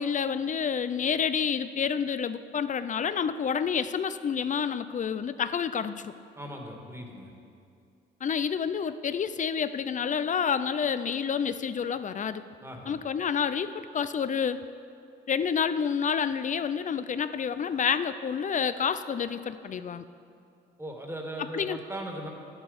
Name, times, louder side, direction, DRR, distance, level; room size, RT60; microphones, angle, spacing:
voice 1, 0.0-6.1 8.2-12.4 12.9-14.6 15.3-20.1 21.5-21.8, left 7 dB, 40° left, 13 dB, 0.5 m, -29 dB
voice 2, 6.4-7.3 12.6-12.9 20.8-22.3, right 1 dB, 15° right, 1 dB, 1.9 m, -38 dB
11.5 x 10.5 x 5.3 m, 2.5 s
cardioid pair, 90°, 20 cm